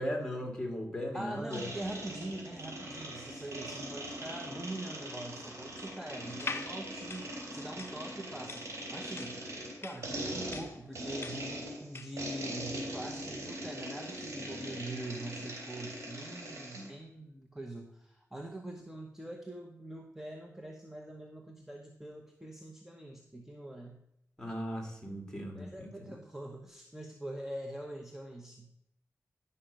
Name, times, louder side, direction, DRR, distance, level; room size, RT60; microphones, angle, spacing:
voice 1, 0.0-1.7 24.4-26.1, equal, 15° left, 2 dB, 2.1 m, -37 dB
voice 2, 1.1-8.7 8.9-9.4 9.8-24.0 25.5-28.7, right 1 dB, 5° right, 2 dB, 0.9 m, -43 dB
sound 1, 1.5-16.9, right 1 dB, 60° right, 3.1 m, -41 dB
sound 2, 6.3-12.3, left 4 dB, 45° left, 0.6 m, -44 dB
10.5 x 5.6 x 5.2 m, 0.77 s
wide cardioid pair, 85°, 5 cm